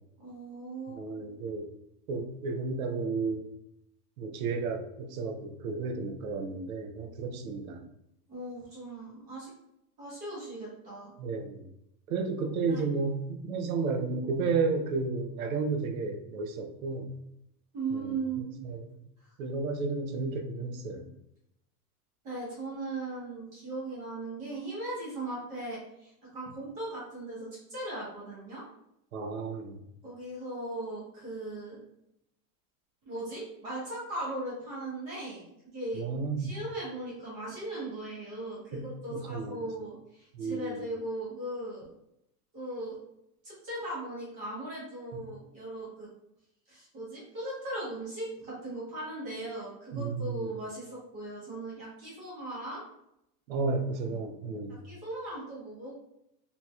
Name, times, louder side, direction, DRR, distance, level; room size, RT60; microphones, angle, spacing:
voice 1, 0.2-1.0 7.7-7.8 8.3-9.5 10.0-11.1 12.4-12.8 17.7-18.6 19.2-19.3 22.2-28.6 30.0-31.8 33.1-35.5 35.7-36.0 36.4-41.9 42.5-43.0 43.4-46.1 46.7-52.8 54.8-55.9, right 2 dB, 15° right, -7 dB, 0.6 m, -38 dB
voice 2, 0.9-1.7 2.1-3.4 4.2-7.8 11.2-11.7 12.1-17.1 17.9-18.1 18.6-18.9 19.4-21.1 29.1-29.8 36.0-36.6 38.7-39.7 40.3-40.8 45.1-45.2 49.9-50.4 53.5-54.8, right 4 dB, 60° right, 6 dB, 0.6 m, -32 dB
3.0 x 2.8 x 2.3 m, 0.80 s
supercardioid pair, 170°, 48 cm